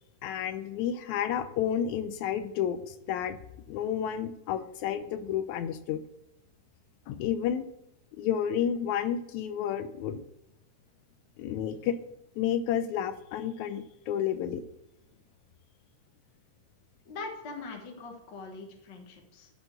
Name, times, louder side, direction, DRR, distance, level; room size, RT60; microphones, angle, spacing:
voice 1, 0.2-3.4 3.7-6.0 7.1-7.7 8.2-10.2 11.4-12.0 12.4-14.6, left 9 dB, 80° left, 11 dB, 1.7 m, -31 dB
voice 2, 17.0-19.5, left 3 dB, 55° left, 2 dB, 1.3 m, -42 dB
12.5 x 4.4 x 8.0 m, 0.88 s
omnidirectional pair, 3.8 m